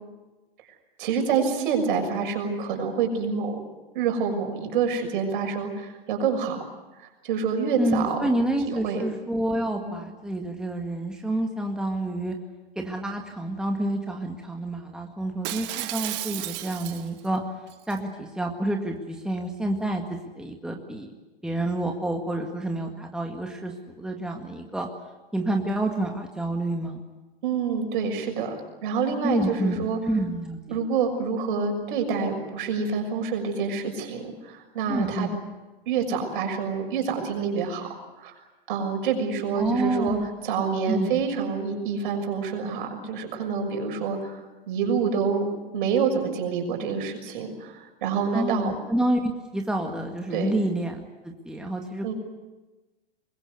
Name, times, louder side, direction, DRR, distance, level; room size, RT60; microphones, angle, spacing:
voice 1, 1.0-3.6 3.9-6.7 7.2-8.3 8.7-9.0 9.7-9.9 27.4-28.5 28.8-30.0 30.7-35.3 35.8-37.9 38.2-38.3 38.7-40.2 40.4-44.4 44.7-45.5 45.7-48.7 50.3-50.5 52.0-52.1, right 6 dB, 55° right, 4 dB, 6.4 m, -27 dB
voice 2, 7.8-12.4 12.8-17.4 17.9-21.1 21.4-24.9 25.3-27.0 29.2-30.8 34.9-35.4 39.6-40.3 40.9-41.2 48.3-52.1, right 1 dB, ahead, 2 dB, 1.9 m, -28 dB
Shatter, 15.4-17.3 17.7-18.0, right 15 dB, 35° right, 1.6 m, -33 dB
25.0 x 21.5 x 8.2 m, 1.2 s
figure-of-eight pair, 105°, 30 cm